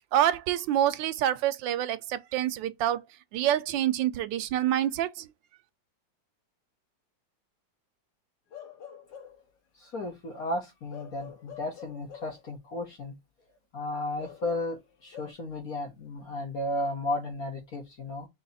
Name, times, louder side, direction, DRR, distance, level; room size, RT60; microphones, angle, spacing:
voice 1, 0.1-3.0 3.3-5.3, right 11 dB, 85° right, 1.3 m, -27 dB
Bark / Livestock farm animals working animals, 8.5-9.5 10.9-12.4 14.2-15.3, left 9 dB, 75° left, 1.7 m, -47 dB
voice 2, 9.8-13.2 13.7-18.3, left 1 dB, 55° left, 1.6 m, -34 dB
4.1 x 3.1 x 4.0 m
omnidirectional pair, 2.0 m